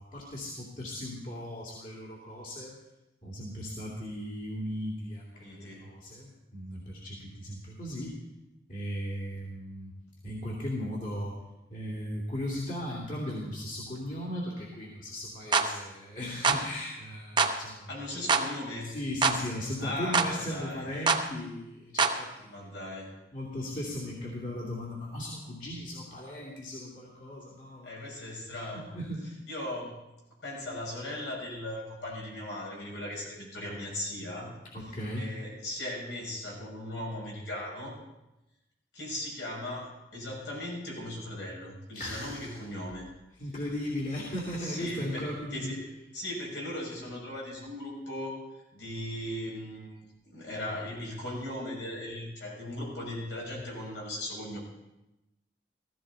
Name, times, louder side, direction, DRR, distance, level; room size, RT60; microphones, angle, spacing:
voice 1, 0.0-2.8 3.2-8.2 8.7-9.9 10.2-11.3 11.7-18.3 18.8-22.5 23.3-27.9 28.2-29.3 34.6-35.3 41.9-42.6 43.4-45.8, left 1 dB, 45° left, -4 dB, 2.7 m, -37 dB
voice 2, 5.3-5.9 17.9-18.9 19.8-20.8 22.5-23.2 27.8-29.0 29.5-30.0 30.4-34.5 35.2-38.0 38.9-43.1 44.6-45.8 46.1-48.4 48.7-54.6, left 1 dB, 80° left, -3 dB, 6.3 m, -38 dB
sound 1, 15.5-15.7 16.4-16.6 17.4-17.6 18.3-18.5 19.2-19.4 20.1-20.3 21.1-21.2 22.0-22.2, right 4 dB, 25° right, 0.8 m, -24 dB
15.5 x 15.5 x 4.1 m, 0.94 s
head